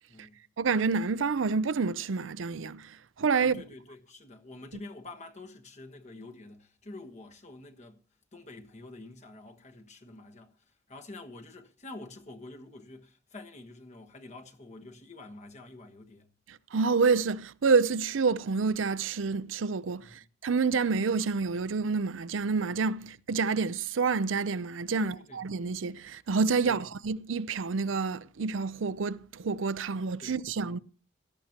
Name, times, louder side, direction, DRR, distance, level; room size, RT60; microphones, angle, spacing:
voice 1, 0.6-3.6 16.7-30.8, right 4 dB, 85° right, 0.5 m, -28 dB
voice 2, 3.4-8.0 8.3-10.5 10.9-16.3 20.0-20.3 25.0-25.4 26.6-26.9 30.2-30.4 30.6-30.8, left 2 dB, 40° left, 1.3 m, -47 dB
17.0 x 13.5 x 2.9 m
head